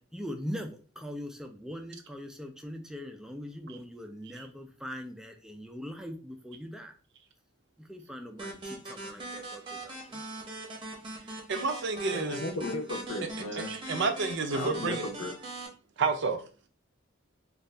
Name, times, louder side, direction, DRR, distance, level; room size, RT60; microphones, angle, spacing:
voice 1, 0.0-6.9 7.8-10.2, equal, 5° right, 4 dB, 0.3 m, -41 dB
sound 1, 8.4-15.7, right 2 dB, 25° right, 0.7 m, -41 dB
voice 2, 11.5-12.4 13.5-15.0 16.0-16.4, right 4 dB, 60° right, 7 dB, 0.5 m, -30 dB
voice 3, 12.1-13.8 14.5-15.4, left 2 dB, 80° left, 3 dB, 0.7 m, -35 dB
2.7 x 2.3 x 3.2 m, 0.38 s
head